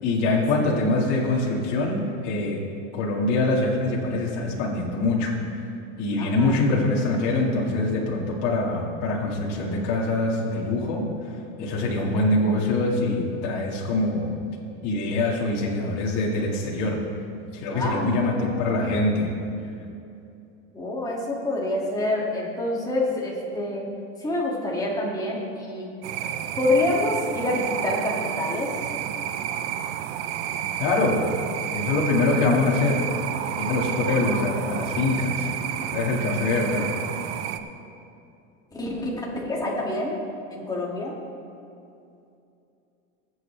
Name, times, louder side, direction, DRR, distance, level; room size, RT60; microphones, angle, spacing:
voice 1, 0.0-2.6 2.9-5.3 6.0-11.0 11.6-14.3 14.8-17.0 17.5-19.3 30.8-31.2 31.7-33.0 33.6-35.5 35.9-36.8, left 2 dB, 55° left, -3 dB, 2.3 m, -24 dB
voice 2, 6.2-6.6 12.0-12.3 17.7-18.8 20.7-23.8 24.2-25.9 26.6-28.7 32.3-32.7 34.3-34.5 38.7-40.2 40.5-41.1, left 2 dB, 10° left, -4 dB, 2.5 m, -27 dB
sound 1, 26.0-37.6, right 10 dB, 70° right, 0.8 m, -30 dB
20.0 x 8.1 x 3.4 m, 2.6 s
supercardioid pair, 130°, 35 cm